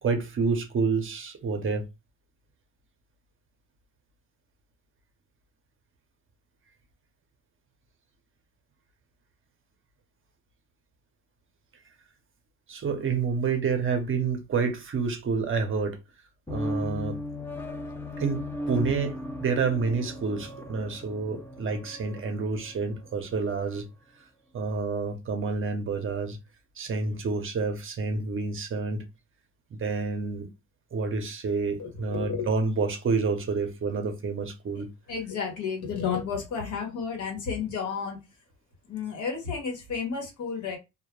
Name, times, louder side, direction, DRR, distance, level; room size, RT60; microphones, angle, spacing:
voice 1, 0.0-1.8 12.7-16.0 16.5-17.2 18.2-19.1 19.4-23.9 24.5-26.4 26.8-29.0 29.7-30.5 30.9-34.9, right 4 dB, 45° right, 0.7 m, -28 dB
sound 1, 16.5-23.8, left 1 dB, 10° left, 0.4 m, -37 dB
voice 2, 31.8-32.5 35.1-38.2 38.9-40.8, left 6 dB, 75° left, 1.0 m, -32 dB
2.2 x 2.1 x 3.0 m
cardioid pair, 90°, 30 cm